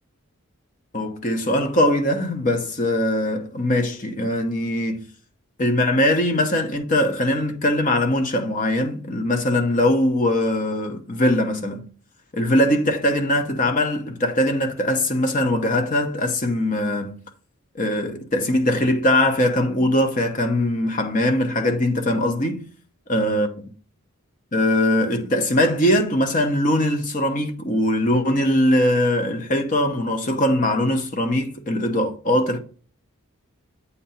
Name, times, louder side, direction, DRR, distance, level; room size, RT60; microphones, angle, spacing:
voice 1, 0.9-5.0 5.6-11.9 12.3-17.2 17.8-22.7 23.1-23.5 24.5-32.6, left 1 dB, 35° left, 0.9 m, -21 dB
8.2 x 2.8 x 5.5 m
head